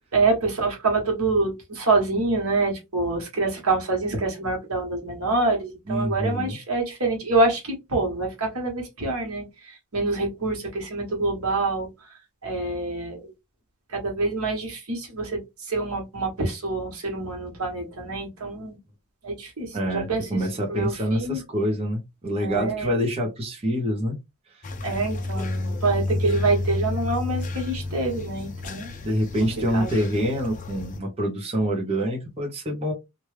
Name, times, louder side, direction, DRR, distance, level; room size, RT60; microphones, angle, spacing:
voice 1, 0.1-11.9 12.4-13.3 13.9-18.8 19.2-21.4 22.4-22.9 24.8-28.9 29.7-29.9, right 3 dB, 75° right, 0 dB, 1.3 m, -26 dB
voice 2, 5.9-6.6 19.7-24.2 29.0-32.9, equal, 25° right, -1 dB, 0.8 m, -26 dB
sound 1, 24.6-31.0, left 2 dB, 35° left, 0.5 m, -30 dB
3.0 x 2.5 x 3.2 m, 0.22 s
head